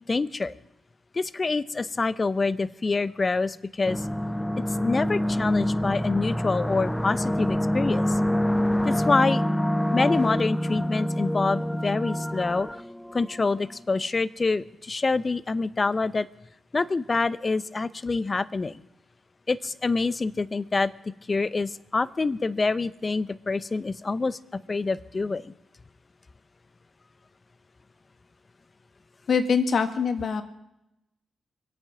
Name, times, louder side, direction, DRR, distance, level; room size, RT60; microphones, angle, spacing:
voice 1, 0.1-0.5 1.1-4.1 4.8-8.2 8.8-9.4 9.9-12.7 13.1-16.3 16.7-18.8 19.5-20.9 21.3-25.5, left 3 dB, 40° left, 17 dB, 0.8 m, -26 dB
sound 1, 3.9-13.6, equal, 10° left, 0.7 m, -26 dB
voice 2, 29.3-30.4, left 5 dB, 60° left, 8 dB, 1.7 m, -23 dB
24.0 x 8.8 x 6.0 m, 0.86 s
hypercardioid pair, 40°, 0 cm